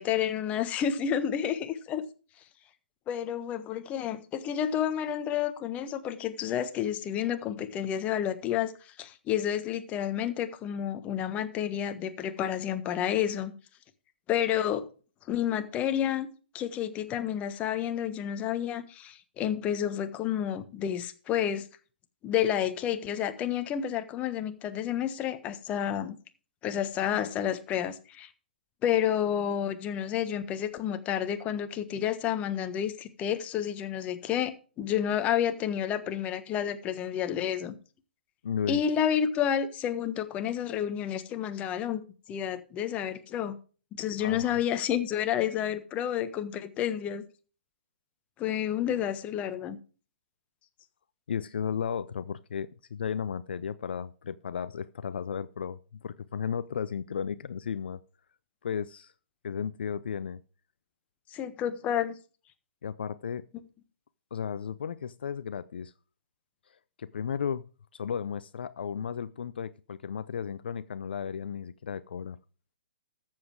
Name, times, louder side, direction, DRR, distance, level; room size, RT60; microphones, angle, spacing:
voice 1, 0.0-2.0 3.1-13.5 14.3-14.9 15.3-16.3 16.5-21.7 22.2-26.2 26.6-28.3 28.8-37.7 38.7-42.0 42.3-43.6 43.9-47.2 48.4-49.8 61.3-62.1, left 9 dB, 25° left, 1.3 m, -30 dB
voice 2, 38.4-38.8 44.2-44.5 51.3-58.0 58.6-59.1 59.4-60.4 62.8-63.5 64.3-65.9 67.0-67.6 67.9-72.4, left 7 dB, 65° left, 0.6 m, -34 dB
13.5 x 7.5 x 4.7 m
figure-of-eight pair, 125°, 6 cm